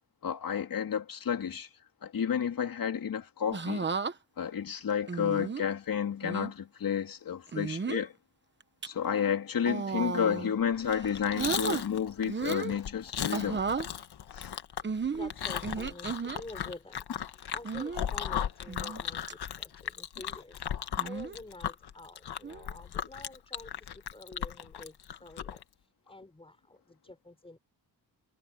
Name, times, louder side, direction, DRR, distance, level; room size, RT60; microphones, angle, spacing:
voice 1, 0.2-1.7 2.0-3.9 4.4-8.1 8.8-13.6 14.3-14.5, left 8 dB, 55° left, 2.7 m, -31 dB
sound 1, 3.5-4.1 5.1-5.6 6.2-6.5 7.5-8.1 8.6-8.9 9.6-10.5 10.9-11.8 12.3-12.8 13.3-13.9 14.8-16.4 17.6-18.1 18.7-19.0 19.3-19.4 21.0-21.4 22.4-22.7, right 5 dB, 30° right, 1.1 m, -34 dB
Chewing mastication, 10.8-25.6, left 9 dB, 75° left, 1.6 m, -37 dB
voice 2, 14.9-27.6, left 2 dB, 15° left, 6.2 m, -49 dB
wide cardioid pair, 150°, 40 cm